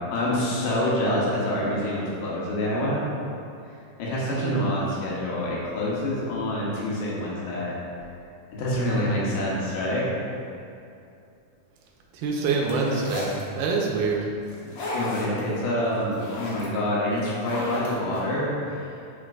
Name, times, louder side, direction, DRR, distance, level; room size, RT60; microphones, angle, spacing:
voice 1, 0.1-3.0 4.0-7.7 8.5-10.1 14.9-18.8, left 1 dB, 85° left, -6 dB, 2.7 m, -26 dB
voice 2, 4.3-4.7 12.1-14.3, right 4 dB, 85° right, -1 dB, 2.3 m, -25 dB
sound 1, 12.7-13.4 14.5-15.4 15.8-16.7 17.2-18.2, left 1 dB, 60° left, 1.7 m, -34 dB
7.8 x 5.8 x 2.5 m, 2.6 s
omnidirectional pair, 3.8 m